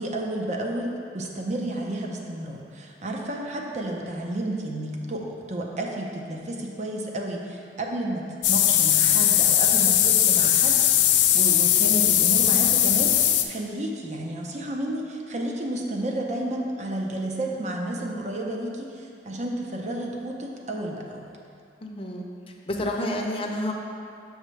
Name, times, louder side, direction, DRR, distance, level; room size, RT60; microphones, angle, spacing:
voice 1, 0.0-21.4, right 1 dB, 40° right, 0 dB, 0.7 m, -31 dB
sound 1, 8.4-13.4, left 11 dB, 85° left, 0.4 m, -19 dB
voice 2, 21.8-22.3 22.7-23.7, left 1 dB, 35° left, 0 dB, 0.7 m, -29 dB
6.6 x 6.5 x 3.2 m, 2.4 s
head